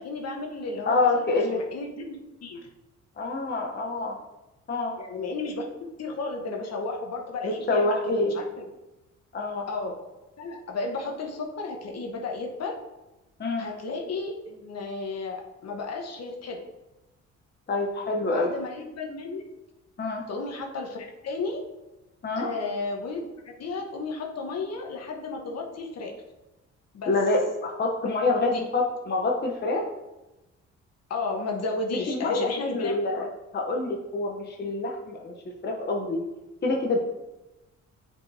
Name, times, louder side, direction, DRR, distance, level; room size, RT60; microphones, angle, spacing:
voice 1, 0.0-2.1 2.4-2.6 5.0-5.6 6.0-8.0 8.2-8.6 9.7-9.9 10.4-12.8 13.6-16.6 18.2-19.4 20.3-21.6 22.3-23.2 23.6-26.1 26.9-27.1 28.4-28.7 31.1-33.3, left 3 dB, 55° left, 2 dB, 1.2 m, -33 dB
voice 2, 0.9-1.6 3.2-4.2 4.7-5.0 7.4-8.3 9.3-9.7 13.4-13.7 17.7-18.5 20.0-20.2 22.2-22.5 27.1-29.8 31.9-33.3 33.5-35.3 35.6-36.2 36.6-37.0, left 2 dB, 35° left, -1 dB, 0.9 m, -26 dB
8.6 x 4.7 x 2.8 m, 1.0 s
cardioid pair, 90°, 30 cm